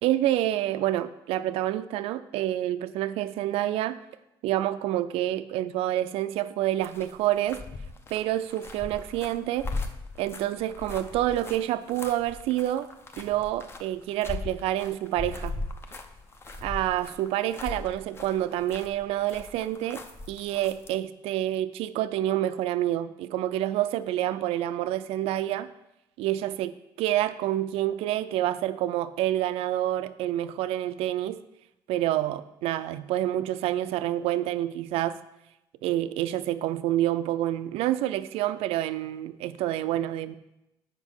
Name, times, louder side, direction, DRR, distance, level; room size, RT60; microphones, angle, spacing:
voice 1, 0.0-4.0 4.4-7.6 8.1-9.7 10.2-12.9 13.2-15.6 16.6-25.7 26.2-31.4 31.9-35.2 35.8-40.4, right 13 dB, 85° right, 13 dB, 0.4 m, -28 dB
sound 1, 6.8-21.0, left 3 dB, 25° left, 0.7 m, -39 dB
8.2 x 5.3 x 5.5 m, 0.89 s
cardioid pair, 140°, 10 cm